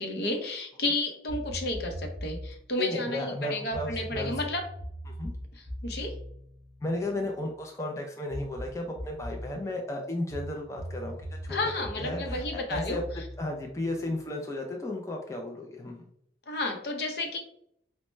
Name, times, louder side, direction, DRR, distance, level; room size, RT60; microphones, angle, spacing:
voice 1, 0.0-4.6 5.8-6.1 11.5-13.0 16.5-17.4, left 2 dB, 60° left, 3 dB, 0.7 m, -32 dB
sound 1, 1.3-2.6 3.7-7.4 8.3-9.5 10.3-14.2, equal, 20° right, 1.3 m, -40 dB
voice 2, 2.8-4.4 5.1-5.3 6.8-11.7 12.0-13.0 13.4-16.1, left 1 dB, 15° left, 1 dB, 0.3 m, -34 dB
4.2 x 2.1 x 3.1 m, 0.71 s
head